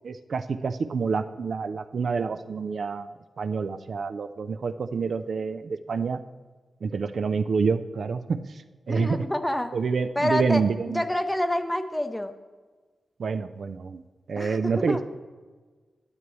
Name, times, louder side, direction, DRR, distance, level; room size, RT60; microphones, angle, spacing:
voice 1, 0.0-3.1 3.4-6.2 6.8-9.3 9.7-11.0 13.2-14.0 14.3-15.1, right 5 dB, 60° right, 10 dB, 0.4 m, -27 dB
voice 2, 8.9-9.7 10.2-12.3 14.4-15.0, left 1 dB, 10° left, 8 dB, 0.6 m, -28 dB
12.0 x 8.2 x 3.1 m, 1.4 s
wide cardioid pair, 115°, 0 cm